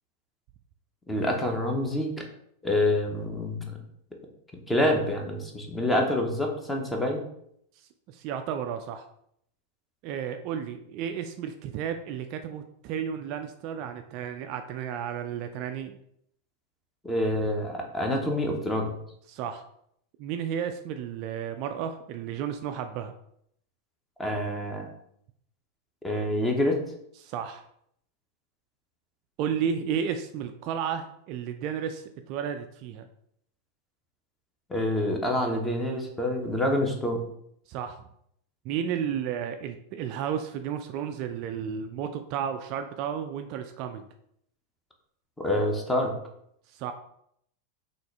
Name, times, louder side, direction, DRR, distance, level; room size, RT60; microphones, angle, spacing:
voice 1, 1.1-2.1 2.6-3.8 4.7-7.2 17.0-18.9 24.2-24.9 26.0-26.8 34.7-37.2 45.4-46.1, left 1 dB, 10° left, 2 dB, 0.8 m, -27 dB
voice 2, 8.1-9.0 10.0-16.0 19.3-19.6 20.2-23.1 27.2-27.6 29.4-33.1 37.7-38.0 38.6-44.1 46.7-46.9, right 8 dB, 40° right, 7 dB, 0.3 m, -33 dB
5.9 x 2.5 x 3.3 m, 0.71 s
figure-of-eight pair, 90°, 0 cm